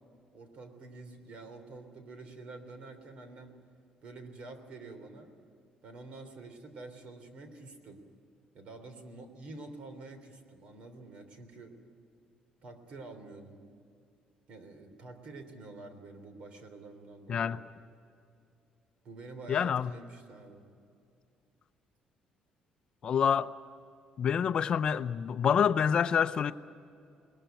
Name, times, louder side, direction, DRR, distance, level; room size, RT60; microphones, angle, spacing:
voice 1, 0.3-3.5 4.0-5.3 5.8-8.0 8.5-11.8 12.6-13.6 14.5-17.6 19.0-20.6, right 3 dB, 55° right, 3.3 m, -48 dB
voice 2, 19.5-19.9 23.0-23.5 24.2-26.5, left 7 dB, 40° left, 0.6 m, -27 dB
21.0 x 20.5 x 9.1 m
cardioid pair, 155°, 2 cm